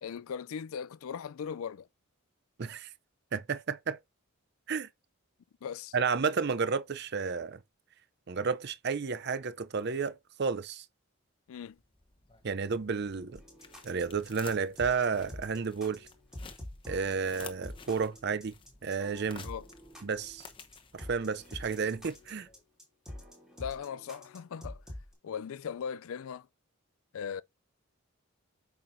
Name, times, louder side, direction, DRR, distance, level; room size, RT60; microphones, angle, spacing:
voice 1, 0.0-1.9 5.6-5.9 11.5-11.8 19.4-19.7 23.6-24.8 25.2-26.5 27.1-27.4, left 7 dB, 70° left, 0.4 m, -38 dB
voice 2, 2.6-2.9 3.3-4.0 4.7-4.9 5.9-7.6 8.3-10.9 12.4-13.4 13.8-16.1 16.9-18.5 18.8-19.5 20.0-20.5 20.9-22.5, right 5 dB, 50° right, 0.5 m, -32 dB
sound 1, 11.6-22.6, left 5 dB, 25° left, 0.9 m, -53 dB
sound 2, 13.3-25.1, left 1 dB, 5° right, 2.8 m, -47 dB
8.7 x 5.8 x 2.6 m
head